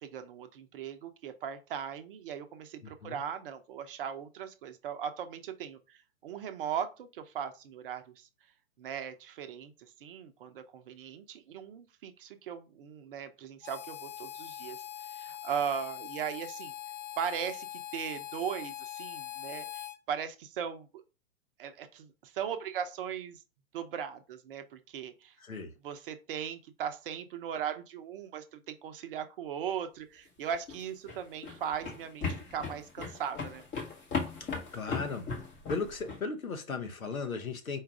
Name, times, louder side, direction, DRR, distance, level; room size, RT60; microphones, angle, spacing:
voice 1, 0.0-8.3 8.8-14.8 15.1-16.7 17.2-17.7 17.9-20.9 21.6-23.4 23.7-25.3 25.8-33.6, right 8 dB, 40° right, 0.7 m, -38 dB
voice 2, 2.8-3.2 25.4-25.7 34.4-35.3 35.7-37.8, left 4 dB, 90° left, 1.0 m, -36 dB
Harmonica, 13.6-20.0, left 13 dB, 35° left, 0.4 m, -42 dB
sound 1, 30.5-36.2, left 4 dB, 20° left, 1.0 m, -37 dB
4.5 x 2.4 x 4.7 m
figure-of-eight pair, 120°, 41 cm